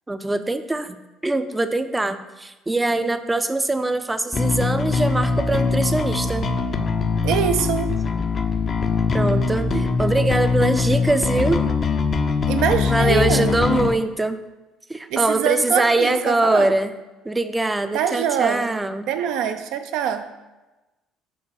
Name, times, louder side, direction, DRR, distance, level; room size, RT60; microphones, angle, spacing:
voice 1, 0.1-1.0 1.2-6.5 9.1-11.6 12.9-14.4 14.9-16.9 17.2-19.1, right 2 dB, 15° right, 10 dB, 0.5 m, -22 dB
Bass guitar, 4.3-13.9, left 4 dB, 40° left, 0.5 m, -22 dB
voice 2, 7.2-7.9 12.5-13.5 15.1-16.7 17.9-18.8 19.1-20.3, right 8 dB, 65° right, 8 dB, 0.5 m, -23 dB
6.2 x 3.8 x 5.8 m, 1.1 s
hypercardioid pair, 55°, 0 cm